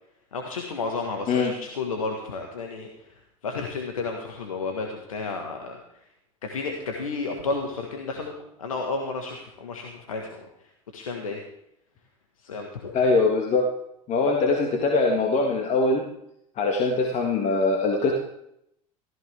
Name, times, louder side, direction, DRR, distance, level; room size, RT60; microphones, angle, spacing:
voice 1, 0.3-6.0 6.4-11.4 12.4-13.0, left 3 dB, 80° left, 2 dB, 1.6 m, -32 dB
voice 2, 12.9-13.7 14.1-16.0 16.6-18.1, left 3 dB, 40° left, 2 dB, 1.8 m, -22 dB
14.5 x 14.0 x 3.6 m, 0.78 s
figure-of-eight pair, 70°, 17 cm